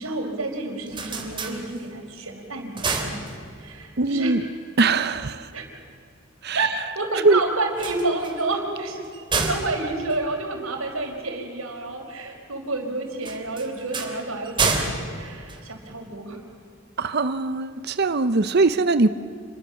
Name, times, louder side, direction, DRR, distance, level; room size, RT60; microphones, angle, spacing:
voice 1, 0.0-3.2 3.6-4.3 5.5-5.7 6.5-9.0 9.3-16.4 17.0-17.1, right 2 dB, 85° right, 3 dB, 4.8 m, -29 dB
sound 1, 0.6-2.2 2.5-3.9 7.6-11.1 13.2-16.2, right 4 dB, 25° right, 3.2 m, -30 dB
voice 2, 4.0-4.4 4.8-5.5 6.4-6.7 7.2-7.4 17.0-19.1, right 3 dB, 50° right, 12 dB, 0.7 m, -21 dB
28.5 x 22.0 x 7.1 m, 2.5 s
head